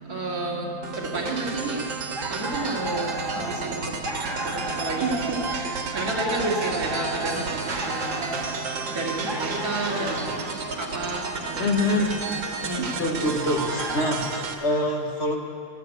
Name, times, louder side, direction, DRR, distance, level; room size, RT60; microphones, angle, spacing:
voice 1, 0.1-0.7 1.1-1.8 2.3-3.1 3.4-3.8 4.8-5.1 5.9-7.5 7.8-8.3 8.9-10.1 10.9-11.2 12.6-12.8, right 3 dB, 50° right, -3 dB, 2.6 m, -29 dB
sound 1, 0.8-14.5, right 4 dB, 85° right, 2.0 m, -32 dB
sound 2, 1.9-14.4, right 1 dB, 15° right, 1.0 m, -35 dB
voice 2, 9.9-10.3 11.5-12.2 13.0-15.4, left 1 dB, 40° left, 1 dB, 1.5 m, -25 dB
15.0 x 11.0 x 8.0 m, 2.4 s
omnidirectional pair, 2.0 m